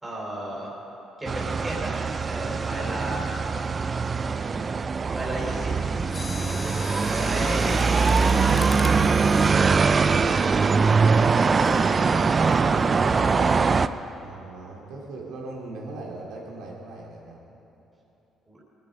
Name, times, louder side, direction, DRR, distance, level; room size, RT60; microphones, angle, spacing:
voice 1, 0.0-0.7 1.2-1.9 2.2-3.3 5.1-5.7 6.4-6.8 7.0-9.2 11.5-13.9 18.5-18.6, right 1 dB, 10° right, -5 dB, 3.7 m, -35 dB
sound 1, 1.3-13.9, right 5 dB, 35° right, 0.4 m, -22 dB
Mechanisms, 6.1-11.0 11.6-11.9 12.5-12.8 13.2-13.3, left 4 dB, 35° left, 0.6 m, -39 dB
voice 2, 14.2-17.4, right 2 dB, 85° right, -2 dB, 2.9 m, -39 dB
19.0 x 11.5 x 5.2 m, 3.0 s
cardioid pair, 95°, 0 cm